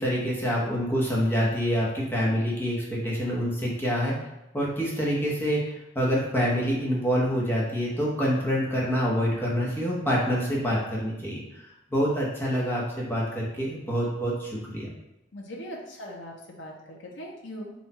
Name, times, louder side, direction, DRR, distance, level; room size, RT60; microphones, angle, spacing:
voice 1, 0.0-4.1 4.5-11.6 11.9-14.9, equal, 10° left, -5 dB, 0.9 m, -26 dB
voice 2, 15.3-17.7, equal, 75° left, -1 dB, 0.8 m, -40 dB
4.1 x 2.4 x 4.2 m, 0.91 s
head